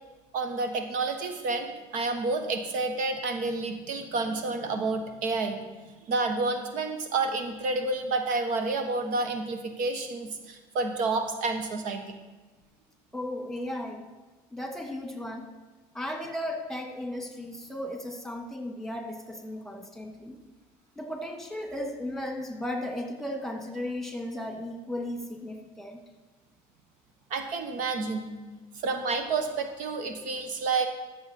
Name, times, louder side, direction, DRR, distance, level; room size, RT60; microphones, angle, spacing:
voice 1, 0.3-5.6 6.1-12.0 27.3-28.3 28.8-30.9, right 3 dB, 70° right, 6 dB, 1.2 m, -29 dB
voice 2, 13.1-14.0 14.5-15.5 15.9-20.3 20.9-26.0, left 1 dB, 5° left, 3 dB, 1.7 m, -35 dB
13.5 x 6.9 x 4.2 m, 1.2 s
supercardioid pair, 90°, 14 cm